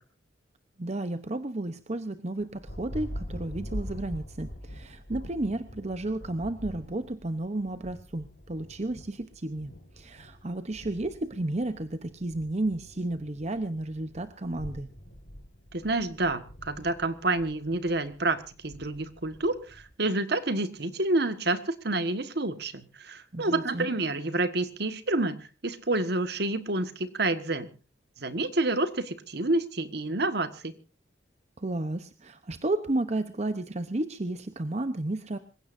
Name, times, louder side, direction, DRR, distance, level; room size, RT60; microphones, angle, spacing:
voice 1, 0.8-14.9 23.3-23.9 31.6-35.4, right 2 dB, 35° right, 10 dB, 0.9 m, -32 dB
Thunder, 2.4-19.9, equal, 80° left, 5.4 m, -44 dB
voice 2, 15.7-27.7 28.2-30.7, right 2 dB, 60° right, 11 dB, 1.5 m, -29 dB
26.0 x 16.0 x 2.6 m, 0.33 s
head